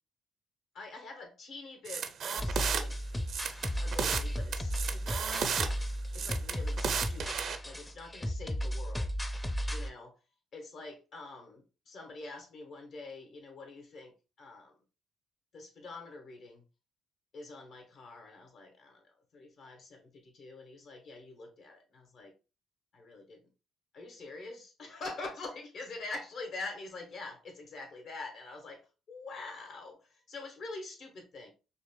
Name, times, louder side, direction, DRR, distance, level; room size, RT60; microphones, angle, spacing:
voice 1, 0.7-3.0 3.8-5.4 6.1-9.1 9.7-10.2 10.5-14.7 15.5-16.6 17.3-22.3 22.9-23.5 23.9-31.5, left 3 dB, 65° left, 1.3 m, -45 dB
sound 1, 1.9-2.8 3.3-4.3 4.5-5.7 6.1-7.6, right 6 dB, 65° right, 0.5 m, -33 dB
sound 2, 2.4-9.9, equal, 15° left, 0.6 m, -35 dB
5.3 x 2.9 x 2.2 m
supercardioid pair, 55°, 0 cm